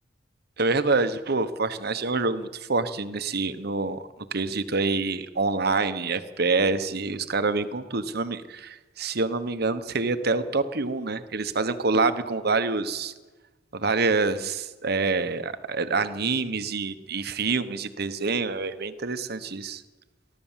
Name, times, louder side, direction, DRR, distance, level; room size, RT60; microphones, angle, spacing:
voice 1, 0.6-4.0 4.3-13.1 13.7-14.5 14.8-19.8, right 3 dB, 55° right, 11 dB, 1.1 m, -26 dB
28.5 x 12.5 x 7.4 m, 1.3 s
head